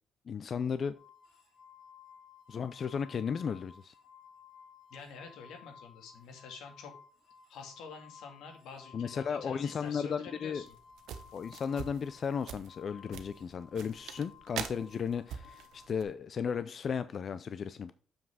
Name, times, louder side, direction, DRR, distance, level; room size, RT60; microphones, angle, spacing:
voice 1, 0.3-1.0 2.5-3.9 8.9-10.6 11.3-17.9, left 6 dB, 35° left, 0.4 m, -35 dB
sound 1, 0.9-15.9, left 7 dB, 65° left, 3.2 m, -57 dB
voice 2, 4.9-6.9 7.5-10.8, left 5 dB, 85° left, 2.3 m, -48 dB
sound 2, 10.7-16.0, right 9 dB, 80° right, 1.0 m, -44 dB
7.2 x 6.0 x 4.7 m
cardioid pair, 180°, 0 cm